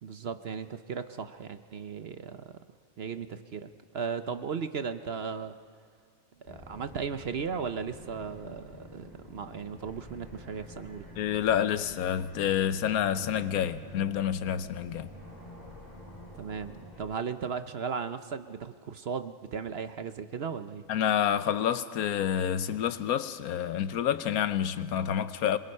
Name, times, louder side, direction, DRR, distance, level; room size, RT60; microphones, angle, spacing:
voice 1, 0.0-2.6 3.0-5.5 6.5-11.1 16.3-20.8, right 6 dB, 55° right, 0.9 m, -36 dB
sound 1, 6.5-17.0, left 1 dB, 30° left, 4.4 m, -48 dB
voice 2, 11.2-15.1 20.9-25.6, left 9 dB, 80° left, 1.3 m, -28 dB
25.5 x 23.0 x 5.5 m
omnidirectional pair, 1.5 m